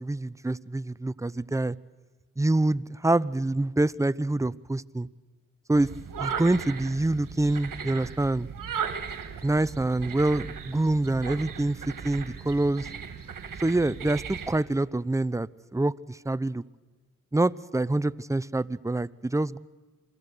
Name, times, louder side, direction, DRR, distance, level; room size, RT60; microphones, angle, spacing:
voice 1, 0.0-1.8 2.4-5.1 5.7-5.9 6.2-8.5 9.4-11.8 12.0-12.9 13.6-16.6 17.3-19.6, right 2 dB, 10° right, 18 dB, 0.7 m, -26 dB
sound 1, 5.7-14.6, right 7 dB, 75° right, 2.2 m, -37 dB
28.5 x 22.5 x 6.8 m, 1.3 s
cardioid pair, 50°, 33 cm